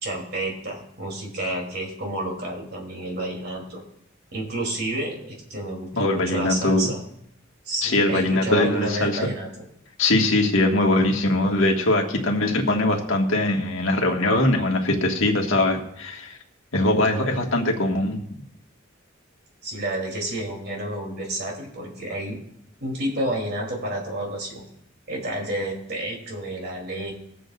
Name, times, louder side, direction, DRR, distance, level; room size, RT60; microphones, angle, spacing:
voice 1, 0.0-3.8 4.3-7.0 7.6-9.6 19.6-22.4 22.8-24.6 25.1-27.1, right 1 dB, 55° right, -1 dB, 3.0 m, -30 dB
voice 2, 6.0-6.9 7.8-9.2 10.0-16.4 16.7-18.2, left 2 dB, 85° left, 1 dB, 1.7 m, -21 dB
22.0 x 8.0 x 2.5 m, 0.72 s
head